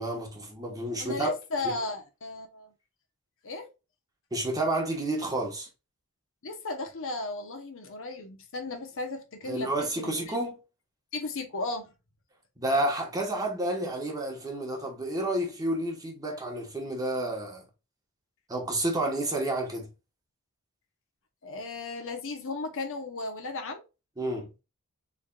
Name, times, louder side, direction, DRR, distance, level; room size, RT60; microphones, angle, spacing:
voice 1, 0.0-1.3 4.3-5.7 9.4-10.6 12.6-17.6 18.5-19.9 24.2-24.5, right 1 dB, 15° right, 1.2 m, -30 dB
voice 2, 1.0-2.7 3.4-3.7 6.4-10.4 11.1-11.9 21.4-23.8, left 3 dB, 60° left, 0.9 m, -35 dB
4.1 x 3.3 x 2.3 m
head